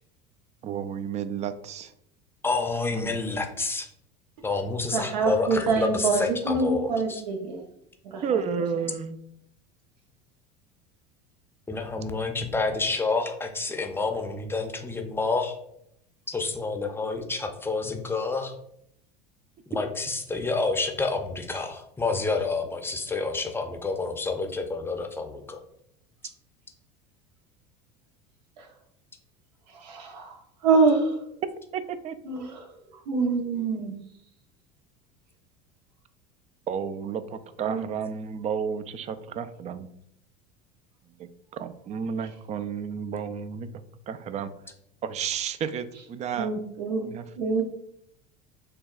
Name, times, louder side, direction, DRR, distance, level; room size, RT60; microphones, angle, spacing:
voice 1, 0.6-1.9 2.9-3.2 8.2-9.2 31.7-32.2 36.7-39.9 41.2-44.5 45.0-46.5 47.0-47.2, right 7 dB, 35° right, 12 dB, 0.4 m, -32 dB
voice 2, 2.4-3.9 4.4-7.2 11.7-15.5 16.3-18.5 19.7-25.6, left 3 dB, 10° left, 4 dB, 0.6 m, -29 dB
voice 3, 4.9-7.6 8.0-8.4 28.6-28.7 29.7-31.2 32.2-33.9 37.7-37.9 46.4-47.0 47.4-47.6, right 4 dB, 80° right, 3 dB, 0.9 m, -26 dB
6.5 x 2.3 x 2.4 m, 0.73 s
hypercardioid pair, 90°, 21 cm